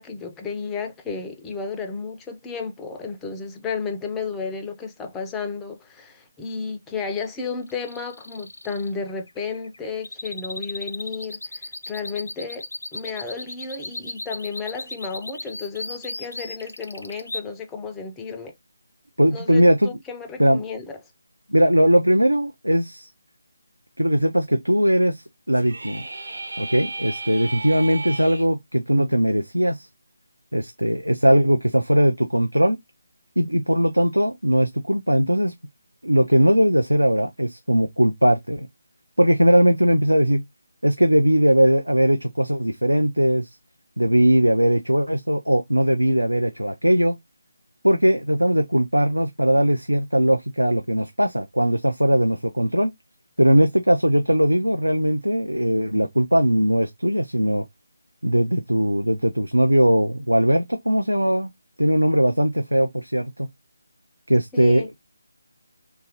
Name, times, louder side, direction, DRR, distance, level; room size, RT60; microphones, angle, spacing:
voice 1, 0.0-12.7 12.9-18.5 19.3-21.0 64.5-64.9, left 5 dB, 10° left, 0.3 m, -33 dB
sound 1, 7.7-17.4, left 2 dB, 65° left, 0.5 m, -36 dB
voice 2, 19.2-19.9 20.4-20.6 21.5-23.1 24.0-26.0 26.6-29.9 30.5-32.8 33.4-35.5 36.0-38.7 39.2-40.4 40.8-43.5 44.0-47.2 47.8-52.9 53.4-57.6 58.2-61.5 61.8-63.5 64.3-64.9, equal, 85° right, 0.4 m, -19 dB
sound 2, 25.5-28.4, right 2 dB, 65° right, 1.0 m, -34 dB
2.9 x 2.3 x 2.8 m
figure-of-eight pair, 155°, 0 cm